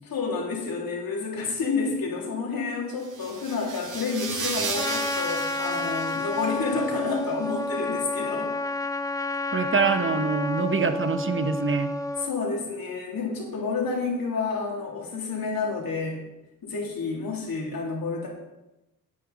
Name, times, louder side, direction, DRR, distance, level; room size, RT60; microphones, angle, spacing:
voice 1, 0.0-8.5 12.2-16.2 16.6-18.3, left 4 dB, 70° left, -2 dB, 3.4 m, -29 dB
sound 1, 3.0-6.9, right 4 dB, 55° right, 2.0 m, -34 dB
Trumpet, 4.7-12.3, left 2 dB, 10° left, 0.5 m, -30 dB
voice 2, 9.5-11.9, right 4 dB, 35° right, 8 dB, 1.1 m, -25 dB
11.0 x 9.1 x 4.2 m, 0.96 s
cardioid pair, 60°, 36 cm